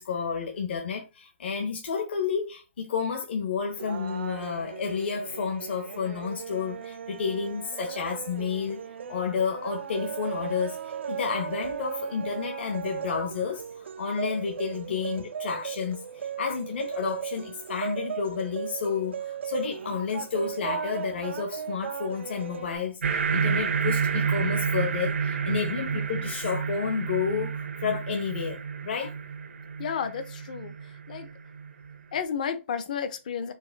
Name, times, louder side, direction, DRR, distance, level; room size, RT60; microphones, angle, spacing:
voice 1, 0.0-8.8 9.1-28.6 28.8-29.1, left 6 dB, 55° left, 1.0 m, -31 dB
sound 1, 3.8-22.8, right 8 dB, 65° right, 0.5 m, -37 dB
sound 2, 23.0-32.0, right 6 dB, 80° right, 1.2 m, -30 dB
voice 2, 29.8-31.3 32.1-33.5, left 7 dB, 40° left, 0.6 m, -32 dB
4.7 x 2.6 x 3.8 m
hypercardioid pair, 175°, 7 cm